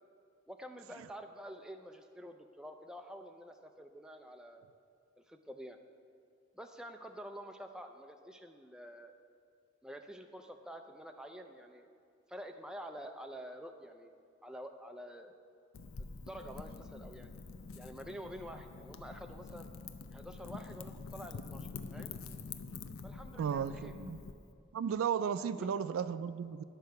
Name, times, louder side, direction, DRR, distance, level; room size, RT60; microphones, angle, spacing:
voice 1, 0.5-4.7 5.3-5.8 6.5-9.1 9.8-11.9 12.3-14.1 14.4-15.3 16.2-17.3 17.8-19.7 20.1-22.1 23.0-23.9 25.4-25.7, equal, 5° right, 5 dB, 0.4 m, -48 dB
Wind / Fire, 15.7-24.3, left 4 dB, 85° left, 0.5 m, -46 dB
voice 2, 23.4-24.2 24.7-26.6, right 7 dB, 85° right, 14 dB, 0.3 m, -34 dB
10.5 x 4.6 x 6.5 m, 2.3 s
head